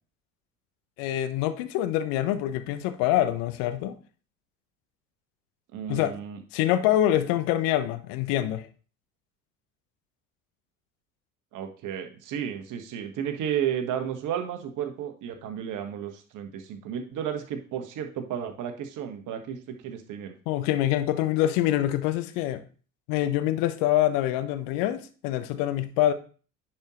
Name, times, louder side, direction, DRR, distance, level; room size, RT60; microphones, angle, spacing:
voice 1, 1.0-4.0 5.9-6.1 6.5-8.7 20.5-22.6 23.1-26.1, left 13 dB, 60° left, 11 dB, 0.9 m, -25 dB
voice 2, 5.7-6.4 11.5-20.3, right 9 dB, 50° right, 5 dB, 1.5 m, -33 dB
10.5 x 4.6 x 3.1 m, 0.39 s
hypercardioid pair, 65°, 39 cm